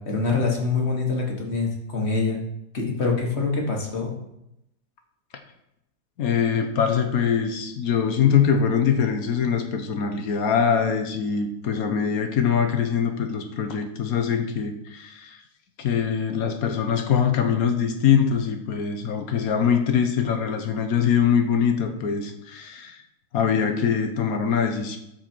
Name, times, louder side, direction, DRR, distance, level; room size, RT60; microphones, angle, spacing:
voice 1, 0.0-2.4 2.7-4.1, left 4 dB, 45° left, 0 dB, 1.9 m, -25 dB
voice 2, 6.2-15.4 15.8-23.0 23.3-25.0, left 7 dB, 70° left, 5 dB, 1.4 m, -23 dB
13.0 x 4.7 x 4.5 m, 0.85 s
omnidirectional pair, 1.6 m